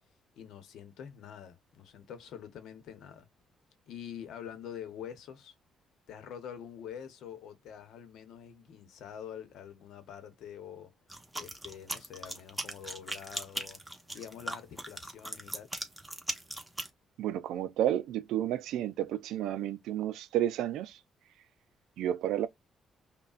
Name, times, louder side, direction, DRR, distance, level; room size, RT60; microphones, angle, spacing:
voice 1, 0.4-3.3 3.9-5.5 6.1-10.9 11.3-13.8 14.1-15.7, left 9 dB, 80° left, 0.9 m, -46 dB
sound 1, 11.1-16.9, right 1 dB, 5° right, 0.9 m, -39 dB
voice 2, 17.2-21.0 22.0-22.5, right 11 dB, 85° right, 0.4 m, -31 dB
5.4 x 2.2 x 2.4 m
cardioid pair, 90°, 0 cm